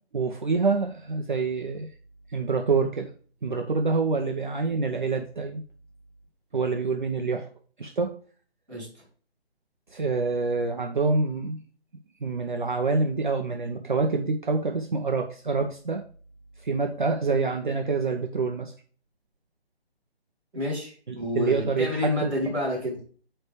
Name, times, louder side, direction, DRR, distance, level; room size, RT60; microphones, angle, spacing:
voice 1, 0.1-1.9 2.3-3.1 3.4-5.6 6.5-7.5 7.8-8.1 9.9-11.6 12.2-16.0 16.6-18.7 21.1-22.3, right 4 dB, 50° right, 3 dB, 0.8 m, -26 dB
voice 2, 20.5-23.0, left 1 dB, 5° right, -14 dB, 2.7 m, -29 dB
8.7 x 3.4 x 5.0 m, 0.42 s
hypercardioid pair, 180°, 32 cm